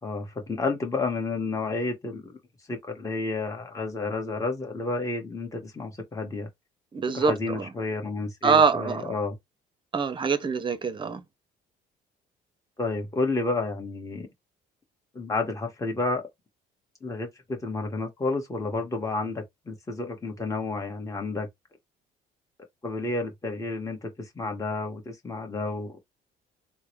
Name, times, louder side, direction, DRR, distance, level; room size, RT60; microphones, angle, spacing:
voice 1, 0.0-2.4 2.7-6.5 7.1-9.4 12.8-14.3 15.1-16.2 17.0-21.5 22.8-26.0, left 3 dB, 20° left, 1.6 m, -31 dB
voice 2, 6.9-7.7 8.4-9.1 9.9-11.2, right 5 dB, 30° right, 0.7 m, -24 dB
3.6 x 2.2 x 3.1 m
cardioid pair, 110°, 17 cm